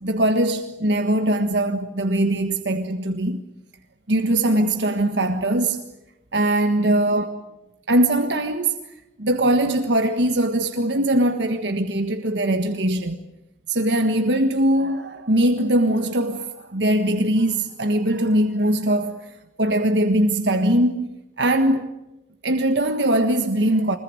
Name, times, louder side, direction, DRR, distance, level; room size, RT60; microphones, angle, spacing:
voice 1, 0.0-3.4 4.1-5.8 6.3-7.3 7.9-8.8 9.2-13.2 13.7-19.3 19.6-21.1 21.4-21.9 22.4-24.0, right 1 dB, 85° right, 1.5 m, -21 dB
25.0 x 21.0 x 9.7 m
head